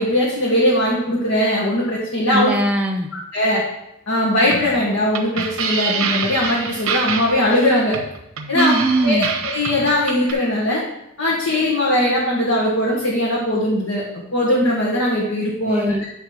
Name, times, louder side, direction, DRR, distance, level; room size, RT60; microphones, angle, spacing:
voice 1, 0.0-2.5 3.1-3.6 4.1-8.0 8.5-8.7 9.0-10.8 11.2-14.0 14.3-16.0, left 1 dB, 70° left, -5 dB, 1.7 m, -20 dB
voice 2, 2.3-3.1 8.5-9.3 15.6-16.0, right 1 dB, 5° right, 1 dB, 0.4 m, -20 dB
sound 1, 4.4-10.3, right 6 dB, 70° right, 1.1 m, -26 dB
9.7 x 3.5 x 6.1 m, 0.83 s
head